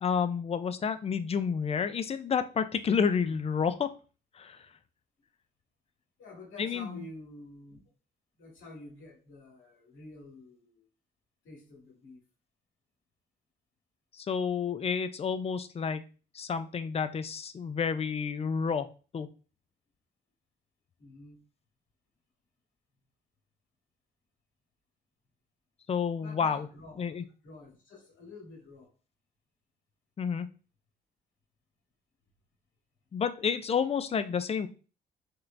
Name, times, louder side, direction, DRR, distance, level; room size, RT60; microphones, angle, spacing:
voice 1, 0.0-3.9 4.4-4.6 6.6-7.0 14.1-16.0 16.3-18.9 19.1-19.3 25.9-26.7 27.0-27.2 30.2-30.5 33.1-34.7, left 6 dB, 30° left, 11 dB, 0.4 m, -30 dB
voice 2, 6.2-7.8 8.4-10.8 11.4-12.2 21.0-21.4 26.2-27.1 27.4-28.9, left 2 dB, 75° left, -2 dB, 2.0 m, -49 dB
4.5 x 3.0 x 2.5 m, 0.35 s
cardioid pair, 90°, 20 cm